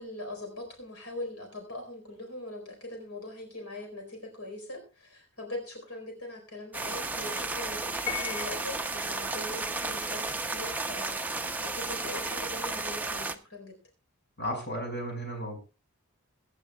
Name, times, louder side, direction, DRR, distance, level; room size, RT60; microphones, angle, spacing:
voice 1, 0.0-13.8, left 1 dB, 85° left, 4 dB, 4.4 m, -41 dB
sound 1, 6.7-13.4, right 3 dB, 10° right, 0.7 m, -33 dB
Piano, 8.1-9.0, left 8 dB, 30° left, 1.3 m, -36 dB
voice 2, 14.4-15.6, equal, 50° left, 3 dB, 5.4 m, -34 dB
23.0 x 11.0 x 2.4 m, 0.31 s
head